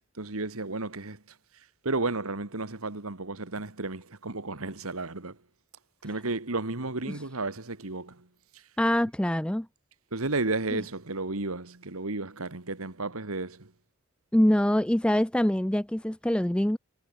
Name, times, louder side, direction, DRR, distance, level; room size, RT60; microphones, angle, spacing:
voice 1, 0.2-1.2 1.8-5.4 6.0-8.3 8.5-8.6 10.1-13.7, right 2 dB, 75° right, 2.0 m, -33 dB
voice 2, 8.8-9.7 10.7-10.8 14.3-16.8, equal, 5° left, 0.4 m, -24 dB
head